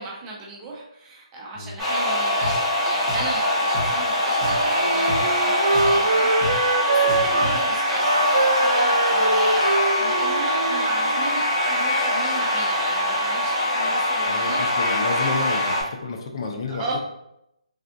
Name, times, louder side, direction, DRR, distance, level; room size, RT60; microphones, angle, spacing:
voice 1, 0.0-14.6 16.7-17.0, right 2 dB, 15° right, -3 dB, 0.5 m, -34 dB
sound 1, 1.8-15.8, left 1 dB, 15° left, 1.0 m, -23 dB
Drum, 2.4-2.5 3.1-3.3 3.7-3.9 4.4-4.7 5.1-5.2 5.7-6.0 6.4-6.5 7.1-7.6, left 1 dB, 45° right, 0.9 m, -31 dB
Wind instrument woodwind instrument, 4.4-7.5 7.9-11.4, right 3 dB, 70° right, 0.4 m, -24 dB
voice 2, 14.2-15.7 16.0-16.8, left 4 dB, 45° left, 2 dB, 0.5 m, -30 dB
3.4 x 2.4 x 2.5 m, 0.80 s
hypercardioid pair, 160°, 4 cm